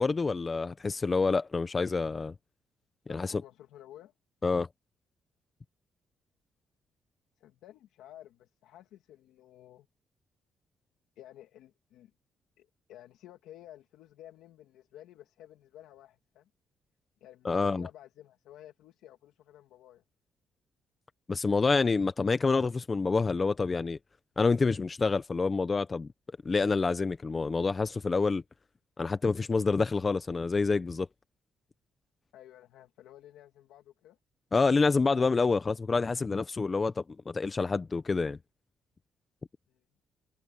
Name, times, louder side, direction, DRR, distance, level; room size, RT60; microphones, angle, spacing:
voice 1, 0.0-2.3 3.1-3.4 4.4-4.7 17.4-17.9 21.3-24.0 24.4-26.1 26.4-28.4 29.0-31.1 34.5-38.4, left 4 dB, 30° left, 0.9 m, -27 dB
voice 2, 3.1-4.1 7.4-9.9 11.2-12.1 12.6-16.5 17.2-20.0 32.3-34.2 39.7-39.8, left 12 dB, 90° left, 2.4 m, -53 dB
cardioid pair, 90°, 0 cm